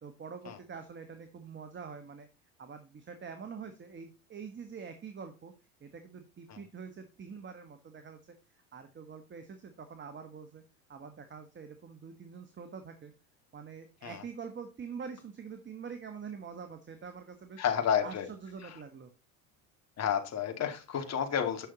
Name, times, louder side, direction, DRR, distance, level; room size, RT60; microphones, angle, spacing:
voice 1, 0.0-2.3 2.6-5.5 5.8-10.6 10.9-13.1 13.5-17.6 18.0-19.1, right 6 dB, 30° right, 8 dB, 1.4 m, -45 dB
voice 2, 17.6-18.3 18.6-18.7 20.0-21.7, left 8 dB, 40° left, 6 dB, 2.4 m, -31 dB
9.4 x 6.3 x 4.0 m, 0.29 s
supercardioid pair, 90°, 40 cm